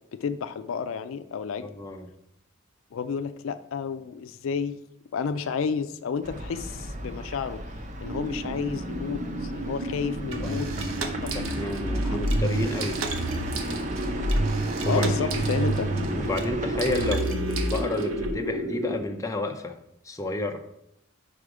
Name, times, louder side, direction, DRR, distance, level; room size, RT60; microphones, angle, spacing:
voice 1, 0.1-1.7 2.9-4.8 5.1-7.6 8.0-10.7 11.2-11.4 12.0-12.2 14.8-15.9, left 6 dB, 75° left, 10 dB, 0.4 m, -31 dB
voice 2, 1.6-2.1 10.3-10.8 11.3-13.0 14.8-15.3 16.2-19.8 20.0-20.6, left 1 dB, 15° left, 4 dB, 0.6 m, -31 dB
sound 1, 6.2-17.1, right 1 dB, 35° right, 0.6 m, -36 dB
sound 2, 8.0-19.0, equal, 70° right, 1.6 m, -33 dB
sound 3, 10.3-18.3, right 2 dB, 90° right, 0.8 m, -29 dB
4.9 x 4.8 x 4.9 m, 0.78 s
head